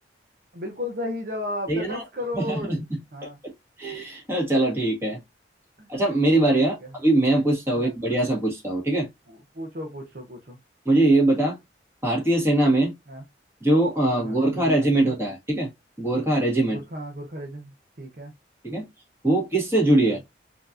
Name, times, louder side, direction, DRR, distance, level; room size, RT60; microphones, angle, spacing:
voice 1, 0.5-2.8 3.1-3.4 5.8-5.9 6.6-6.9 7.7-8.2 9.3-10.6 13.1-13.2 14.0-15.1 16.6-18.3 20.0-20.2, left 1 dB, 50° right, 0.8 m, -35 dB
voice 2, 1.7-2.0 2.3-2.8 3.4-3.5 3.8-5.2 5.9-9.1 10.9-11.6 12.0-12.9 13.6-15.7 16.0-16.8 18.6-18.9 19.2-20.2, right 1 dB, 15° right, 1.7 m, -22 dB
4.4 x 2.9 x 2.4 m
head